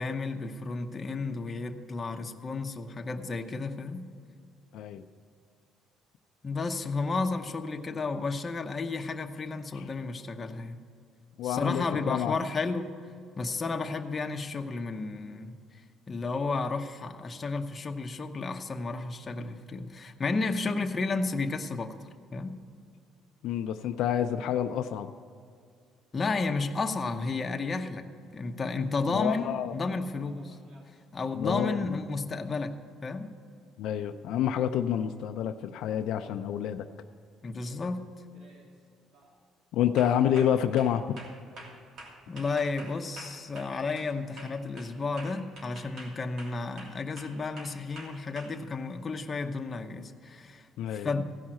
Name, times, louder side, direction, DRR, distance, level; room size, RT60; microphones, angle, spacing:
voice 1, 0.0-4.1 6.4-10.8 11.4-13.0 13.4-15.6 16.1-22.0 22.3-22.6 26.1-30.6 31.1-33.3 37.4-38.0 42.3-50.7 50.9-51.2, left 3 dB, 30° left, 5 dB, 0.9 m, -32 dB
voice 2, 4.7-5.0 9.7-9.9 11.4-12.3 23.4-25.1 29.1-29.7 31.3-32.0 33.8-36.9 39.7-41.2 50.8-51.1, left 10 dB, 75° left, 7 dB, 0.5 m, -28 dB
sound 1, 30.2-31.0 35.2-35.3 36.8-37.1 37.5-37.9 38.3-38.7 39.1-39.4 40.0-44.1 44.4-48.5, right 1 dB, 60° right, 3.0 m, -48 dB
16.0 x 5.6 x 7.6 m, 2.4 s
cardioid pair, 110°, 0 cm